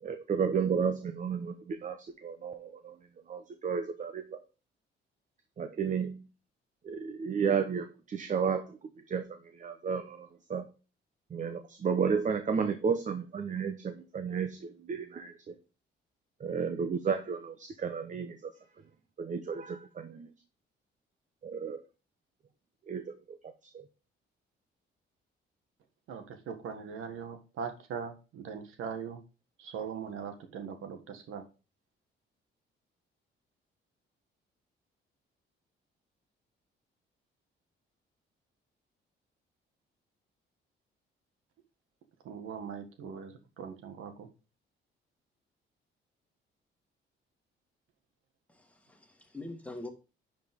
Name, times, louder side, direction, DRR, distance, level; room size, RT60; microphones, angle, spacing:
voice 1, 0.0-3.0 3.3-4.4 5.6-6.3 6.8-10.7 11.3-15.6 16.4-18.5 19.2-20.3 21.4-21.8 22.9-23.4 23.6-23.9, right 6 dB, 35° right, 0.9 m, -33 dB
voice 2, 26.1-29.2 29.6-31.4 42.2-44.3, right 6 dB, 80° right, 1.6 m, -40 dB
voice 3, 48.5-49.9, left 2 dB, 5° left, 1.7 m, -44 dB
10.5 x 5.3 x 3.6 m
cardioid pair, 120°, 21 cm